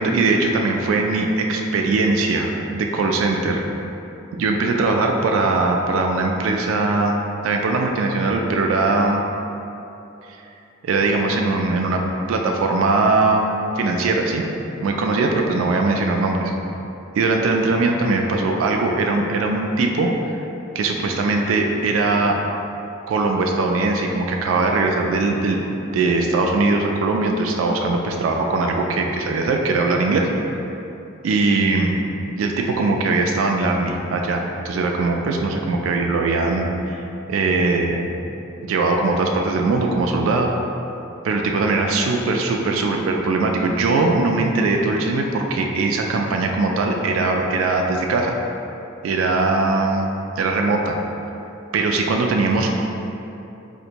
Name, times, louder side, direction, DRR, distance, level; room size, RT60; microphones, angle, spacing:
voice 1, 0.0-3.7 4.4-9.2 10.8-12.0 12.3-13.5 13.8-14.5 14.8-16.5 17.1-20.4 20.7-22.4 23.1-25.6 25.9-30.8 31.2-31.9 32.4-38.1 38.7-40.5 41.2-48.4 49.0-50.1 50.4-51.0 51.7-52.7, right 3 dB, 85° right, 3 dB, 0.3 m, -20 dB
4.2 x 2.5 x 2.8 m, 2.9 s
head